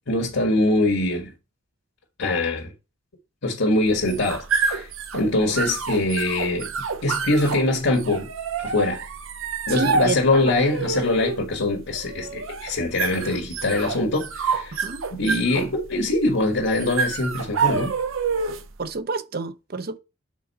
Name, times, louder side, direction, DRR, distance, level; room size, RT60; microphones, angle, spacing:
voice 1, 0.1-1.3 2.2-2.7 3.4-6.7 7.0-8.3 8.6-9.0 9.7-14.8 15.1-17.9, left 2 dB, 85° left, 1.6 m, -23 dB
sound 1, 3.9-18.8, right 5 dB, 85° right, 0.8 m, -28 dB
voice 2, 9.7-10.4 14.7-15.0 18.8-20.0, right 3 dB, 50° right, 0.6 m, -29 dB
6.2 x 3.9 x 5.4 m
head